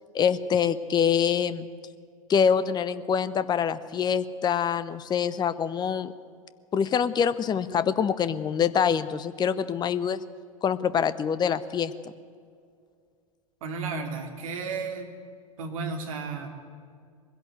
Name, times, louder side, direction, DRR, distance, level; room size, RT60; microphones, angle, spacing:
voice 1, 0.1-1.7 2.3-6.1 6.7-10.2 10.6-11.9, left 7 dB, 20° left, 15 dB, 0.8 m, -25 dB
voice 2, 13.6-15.1 15.6-16.5, right 4 dB, 65° right, 4 dB, 3.0 m, -33 dB
21.5 x 16.0 x 8.0 m, 2.2 s
figure-of-eight pair, 90°, 19 cm